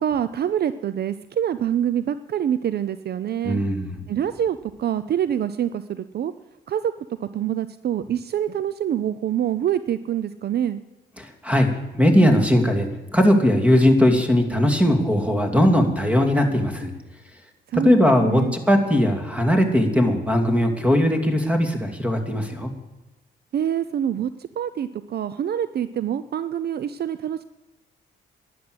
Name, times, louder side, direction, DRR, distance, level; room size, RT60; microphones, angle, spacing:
voice 1, 0.0-3.6 4.1-6.3 6.7-6.9 7.2-10.8 17.7-18.5 23.5-24.3 24.6-27.4, right 10 dB, 55° right, 14 dB, 0.6 m, -25 dB
voice 2, 3.4-4.0 11.2-11.7 12.0-12.9 13.1-16.9 17.8-22.7, equal, 5° right, 5 dB, 2.6 m, -19 dB
11.5 x 11.5 x 7.9 m, 1.1 s
cardioid pair, 90°, 20 cm